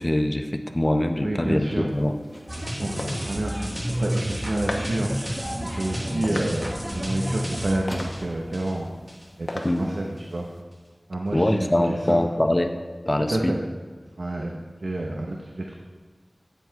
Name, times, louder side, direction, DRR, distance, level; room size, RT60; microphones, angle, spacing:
voice 1, 0.0-2.2 9.6-9.9 11.3-12.8 13.1-13.6, left 1 dB, 25° left, 6 dB, 0.7 m, -23 dB
voice 2, 1.2-1.9 2.8-5.4 5.6-6.7 6.9-8.9 9.4-10.5 11.1-12.2 13.3-13.6 14.2-15.7, right 1 dB, 85° right, 0 dB, 0.8 m, -29 dB
Squeak, 1.7-4.5 4.8-5.2 5.5-5.6 6.0-6.1 6.3-6.5 6.7-8.5 9.4-9.5, equal, 10° left, 1.4 m, -46 dB
sound 1, 1.9-10.6, left 1 dB, 80° left, 0.9 m, -40 dB
sound 2, 2.5-9.3 9.6-9.8, equal, 15° right, 1.0 m, -31 dB
8.0 x 7.4 x 4.6 m, 1.4 s
wide cardioid pair, 55°, 0 cm